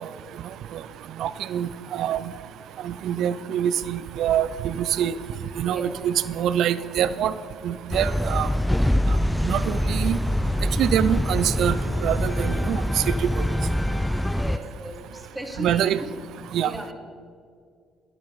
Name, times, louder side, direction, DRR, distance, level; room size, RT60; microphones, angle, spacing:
voice 1, 1.2-2.2 2.8-5.1 5.6-7.3 7.6-8.5 9.4-10.2 10.8-11.8 12.0-12.8 13.2-13.3 15.6-16.0 16.5-16.7, right 10 dB, 60° right, 15 dB, 0.5 m, -25 dB
sound 1, 7.9-14.6, left 1 dB, 5° left, 0.3 m, -24 dB
voice 2, 14.2-15.9 16.6-16.9, equal, 10° right, 3 dB, 2.1 m, -36 dB
12.5 x 12.5 x 4.0 m, 2.1 s
figure-of-eight pair, 50°, 0 cm